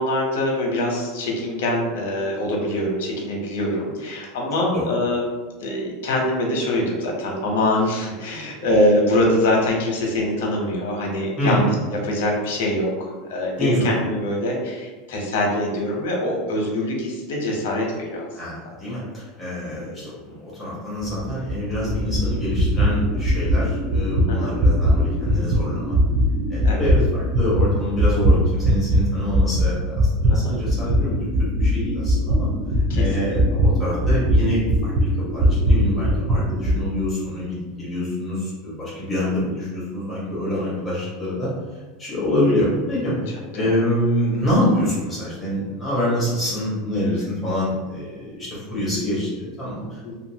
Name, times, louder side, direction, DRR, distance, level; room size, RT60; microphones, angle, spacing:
voice 1, 0.0-5.3 5.6-11.7 12.0-12.9 13.2-18.3 19.9-20.0 24.3-24.5 26.6-26.9 30.3-30.5 32.9-33.6 39.3-39.4 43.6-43.9 50.0-50.1, left 1 dB, 80° left, 0 dB, 0.8 m, -24 dB
voice 2, 4.6-4.9 11.4-11.6 13.6-13.9 18.3-26.0 26.5-31.3 31.5-32.5 33.0-41.5 42.0-50.1, left 1 dB, 10° left, -8 dB, 1.1 m, -26 dB
sound 1, 21.0-29.0 29.3-36.8, equal, 30° right, 0.5 m, -20 dB
2.6 x 2.5 x 2.7 m, 1.3 s
supercardioid pair, 160°, 0 cm